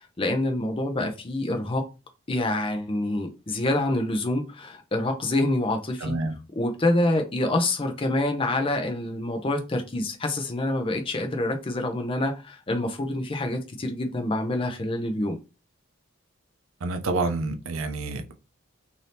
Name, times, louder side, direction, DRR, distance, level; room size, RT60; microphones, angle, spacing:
voice 1, 0.2-1.9 2.3-6.2 6.5-15.4, left 1 dB, 25° left, 0.5 m, -26 dB
voice 2, 6.0-6.3 16.8-18.3, right 3 dB, 85° right, 0.5 m, -28 dB
2.7 x 2.7 x 3.3 m
head